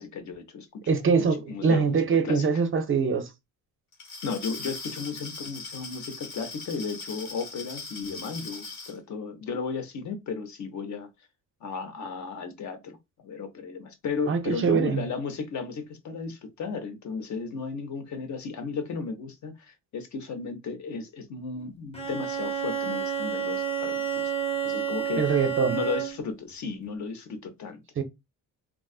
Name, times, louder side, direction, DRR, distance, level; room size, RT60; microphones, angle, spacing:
voice 1, 0.0-2.0 2.2-2.5 4.2-11.1 11.6-13.0 13.2-24.3 24.6-27.8, left 5 dB, 50° left, 0.8 m, -35 dB
voice 2, 0.9-3.3 14.3-15.1 25.2-25.8 28.0-28.1, right 5 dB, 35° right, 0.4 m, -23 dB
Glass, 3.9-9.0, left 3 dB, 85° left, 1.8 m, -40 dB
Bowed string instrument, 21.9-26.4, right 7 dB, 15° left, 0.8 m, -30 dB
3.6 x 2.3 x 2.3 m
cardioid pair, 140°, 36 cm